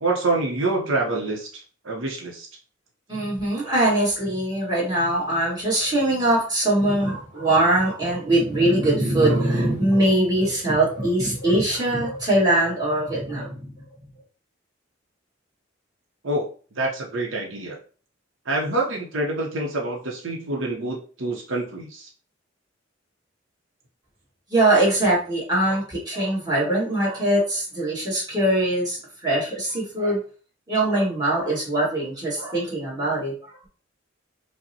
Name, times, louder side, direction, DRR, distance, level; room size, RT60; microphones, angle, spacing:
voice 1, 0.0-2.5 16.2-16.5 16.8-17.8 18.5-22.1, right 2 dB, 75° right, -1 dB, 0.7 m, -26 dB
voice 2, 3.1-13.7 24.5-30.2 30.7-33.3, right 1 dB, 20° right, -7 dB, 1.7 m, -22 dB
5.1 x 2.1 x 2.7 m, 0.40 s
head